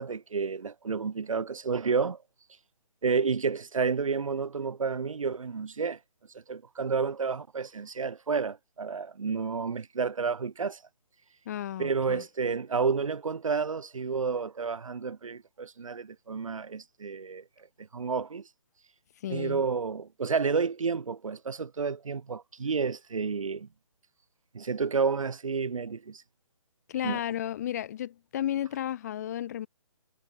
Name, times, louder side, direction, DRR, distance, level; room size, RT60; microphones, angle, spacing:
voice 1, 0.0-2.2 3.0-6.0 6.3-10.8 11.8-17.4 17.8-18.5 19.3-23.7 24.5-26.2 27.0-27.2, right 5 dB, 70° right, 1.5 m, -30 dB
voice 2, 11.4-12.2 19.2-19.6 26.9-29.7, left 11 dB, 30° left, 1.4 m, -33 dB
hypercardioid pair, 160°, 17 cm